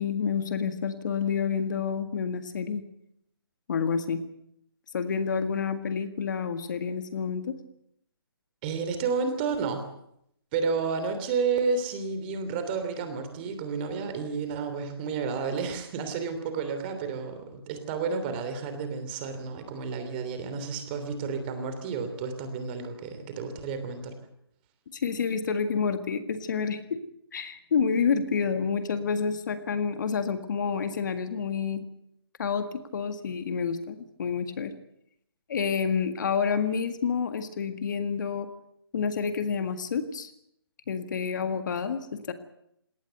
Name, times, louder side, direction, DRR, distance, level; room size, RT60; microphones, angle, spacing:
voice 1, 0.0-2.8 3.7-4.2 4.9-7.6 24.9-27.0 27.3-31.8 32.4-34.7 35.5-38.5 38.9-40.3 40.9-42.3, left 6 dB, 50° left, 9 dB, 1.8 m, -29 dB
voice 2, 8.6-9.9 10.5-24.1, right 5 dB, 25° right, 8 dB, 3.2 m, -31 dB
20.5 x 18.0 x 8.1 m, 0.75 s
hypercardioid pair, 155°, 13 cm